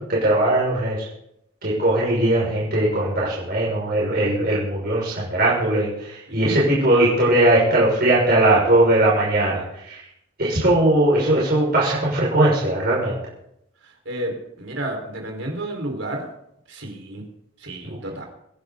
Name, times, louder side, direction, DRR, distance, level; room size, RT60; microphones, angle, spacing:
voice 1, 0.1-1.0 1.6-9.6 10.4-13.2, right 1 dB, 50° right, -6 dB, 6.2 m, -19 dB
voice 2, 6.3-6.7 13.8-16.3 16.7-17.2 17.6-18.3, right 1 dB, 65° right, 2 dB, 4.9 m, -31 dB
26.0 x 11.0 x 4.1 m, 0.76 s
head